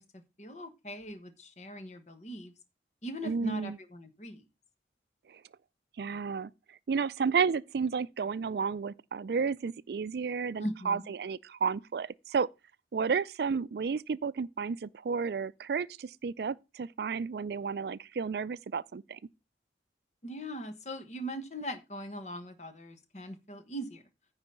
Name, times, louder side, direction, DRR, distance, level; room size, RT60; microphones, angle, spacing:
voice 1, 0.0-2.5 3.0-4.4 10.6-11.1 20.2-24.0, equal, 40° left, 1.3 m, -40 dB
voice 2, 3.2-3.8 5.3-5.4 6.0-6.5 6.9-12.5 12.9-19.2, right 5 dB, 65° right, 0.4 m, -32 dB
9.8 x 4.0 x 6.8 m
head